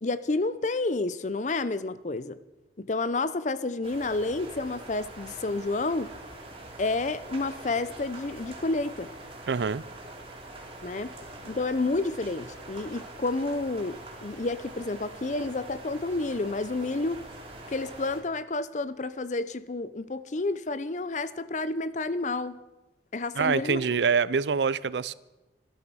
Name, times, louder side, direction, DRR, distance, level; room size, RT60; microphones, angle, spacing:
voice 1, 0.0-2.4 2.8-6.1 6.8-9.1 10.8-11.1 11.4-17.2 17.7-22.6 23.1-24.0, left 3 dB, 45° left, 0.6 m, -30 dB
sound 1, 3.8-18.2, right 2 dB, 35° right, 3.0 m, -44 dB
voice 2, 9.5-9.8 23.4-25.1, right 5 dB, 75° right, 0.5 m, -25 dB
14.0 x 12.5 x 6.2 m
head